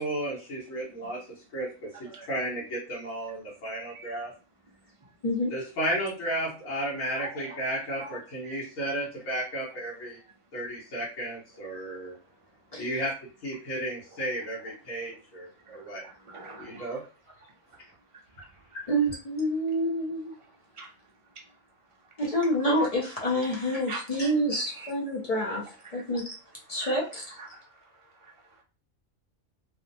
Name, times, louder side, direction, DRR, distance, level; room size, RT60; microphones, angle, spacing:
voice 1, 0.0-4.3 5.5-10.2 10.5-12.1 12.8-13.1 13.4-16.0 16.6-17.0 18.7-18.8, right 1 dB, 80° left, -5 dB, 1.4 m, -33 dB
voice 2, 7.1-7.6 8.0-8.2 8.4-8.6 16.0-17.0 20.7-20.9 23.9-24.3 24.7-24.9 25.5-25.6 25.8-26.0 26.7-27.0 27.4-27.6 28.2-28.3, right 3 dB, 45° right, -1 dB, 0.4 m, -43 dB
voice 3, 18.9-20.3 22.2-25.6 25.9-26.2 26.7-27.2, equal, 50° left, -3 dB, 0.4 m, -27 dB
2.9 x 2.1 x 2.6 m, 0.35 s
omnidirectional pair, 1.4 m